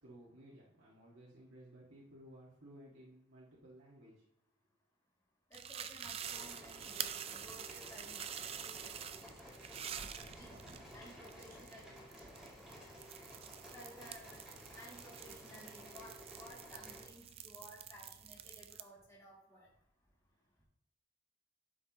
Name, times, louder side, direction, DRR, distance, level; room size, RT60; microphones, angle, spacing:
voice 1, 0.0-4.2 11.1-11.6 20.4-20.6, right 1 dB, 90° right, -6 dB, 1.8 m, -58 dB
voice 2, 5.5-10.5 10.9-11.9 13.7-14.4 14.7-19.7, equal, 15° left, -7 dB, 2.3 m, -57 dB
sound 1, 5.5-18.8, right 8 dB, 30° right, 0.4 m, -47 dB
sound 2, 6.2-17.1, equal, 5° right, 2.9 m, -54 dB
12.0 x 5.7 x 3.0 m, 0.73 s
head